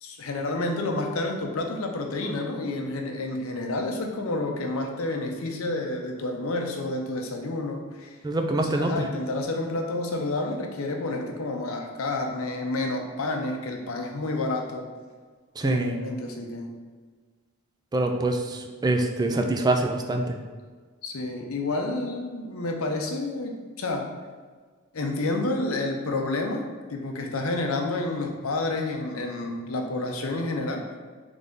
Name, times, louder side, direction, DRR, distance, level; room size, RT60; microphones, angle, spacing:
voice 1, 0.0-8.2 8.5-14.8 15.6-16.7 21.0-24.1 24.9-26.6 26.9-30.8, left 2 dB, 70° left, 2 dB, 0.6 m, -29 dB
voice 2, 8.2-8.9 15.6-15.9 17.9-18.4 18.8-20.2, right 2 dB, 20° right, 4 dB, 0.3 m, -24 dB
3.9 x 3.3 x 3.6 m, 1.5 s
head